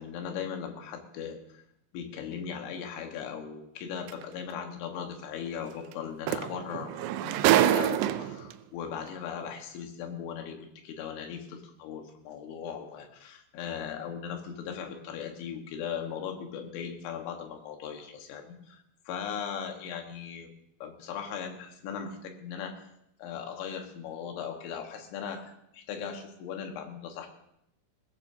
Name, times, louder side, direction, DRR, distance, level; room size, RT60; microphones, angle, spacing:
voice 1, 0.0-1.6 1.9-20.5 20.8-22.9 23.2-27.3, left 7 dB, 85° left, 4 dB, 3.9 m, -38 dB
sound 1, 4.1-4.2 5.9-6.0 6.3-8.5 9.4-9.5, right 12 dB, 85° right, 2.4 m, -25 dB
21.5 x 17.0 x 2.8 m, 0.77 s
omnidirectional pair, 5.4 m